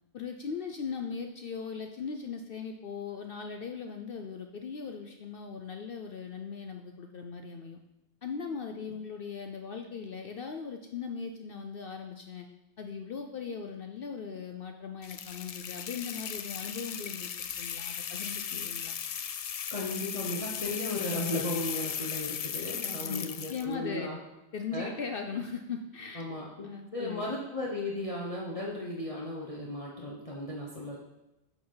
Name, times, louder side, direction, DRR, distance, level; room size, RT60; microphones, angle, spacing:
voice 1, 0.1-7.8 8.2-12.5 12.8-19.0 23.0-24.1 24.5-26.3 26.6-27.3, left 6 dB, 60° left, 5 dB, 0.8 m, -39 dB
sound 1, 15.0-23.7, left 8 dB, 75° left, 0.3 m, -37 dB
voice 2, 19.7-24.2 24.7-24.9 26.1-31.0, left 1 dB, 30° left, -3 dB, 1.1 m, -35 dB
11.5 x 6.4 x 3.9 m, 0.96 s
omnidirectional pair, 1.2 m